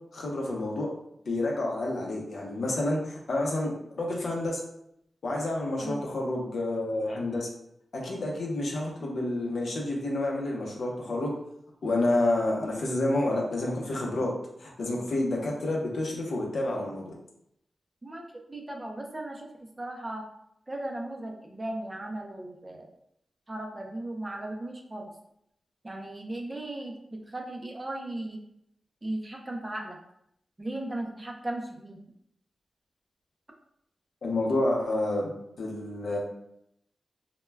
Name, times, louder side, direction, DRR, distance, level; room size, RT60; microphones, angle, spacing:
voice 1, 0.1-0.9 1.3-4.6 5.2-7.5 7.9-11.3 11.8-14.3 14.6-17.0 34.2-36.2, left 2 dB, 75° left, -2 dB, 0.6 m, -29 dB
voice 2, 18.0-20.3 20.7-22.9 23.5-25.0 25.8-28.4 29.0-30.0 30.6-32.0, right 1 dB, 25° right, 1 dB, 0.4 m, -37 dB
2.1 x 2.1 x 3.2 m, 0.75 s
wide cardioid pair, 75°, 0 cm